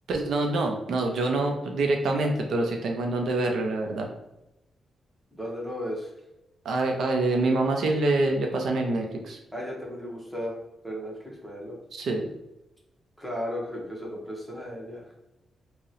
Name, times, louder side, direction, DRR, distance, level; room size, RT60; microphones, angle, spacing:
voice 1, 0.1-4.1 6.6-9.4 11.9-12.3, right 2 dB, 65° right, 2 dB, 0.4 m, -26 dB
voice 2, 5.3-6.1 9.5-10.6 10.8-11.8 13.2-15.0, equal, ahead, -3 dB, 0.7 m, -35 dB
2.8 x 2.0 x 3.8 m, 0.91 s
wide cardioid pair, 175°, 0 cm